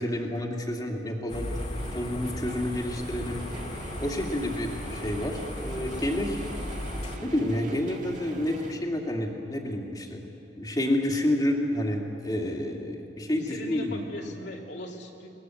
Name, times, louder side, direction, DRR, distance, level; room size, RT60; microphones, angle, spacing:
voice 1, 0.0-1.5 1.9-3.5 4.0-6.4 7.2-10.3 10.5-14.0, left 1 dB, 20° left, 0 dB, 2.5 m, -29 dB
sound 1, 1.3-7.2, left 1 dB, 35° left, 2.1 m, -36 dB
sound 2, 1.5-8.7, right 1 dB, 45° right, 2.0 m, -42 dB
voice 2, 13.3-15.3, left 1 dB, 65° left, -1 dB, 2.9 m, -39 dB
23.0 x 19.5 x 7.9 m, 2.9 s
head